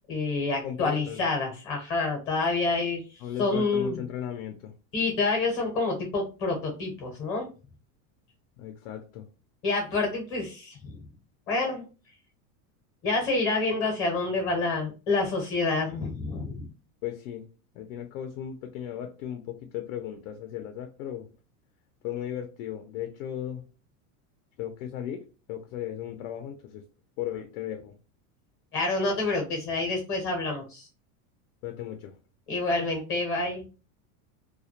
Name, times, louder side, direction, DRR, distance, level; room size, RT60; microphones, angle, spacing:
voice 1, 0.1-4.0 4.9-7.5 9.6-11.0 11.5-11.8 13.0-16.7 28.7-30.9 32.5-33.6, left 3 dB, 30° left, 1 dB, 0.7 m, -28 dB
voice 2, 0.6-1.2 3.2-4.7 8.6-9.3 17.0-17.5 17.8-21.3 22.0-23.6 24.6-26.8 27.2-28.0 31.6-32.2, left 10 dB, 70° left, 5 dB, 0.5 m, -36 dB
2.2 x 2.0 x 2.8 m, 0.33 s
supercardioid pair, 165°, 42 cm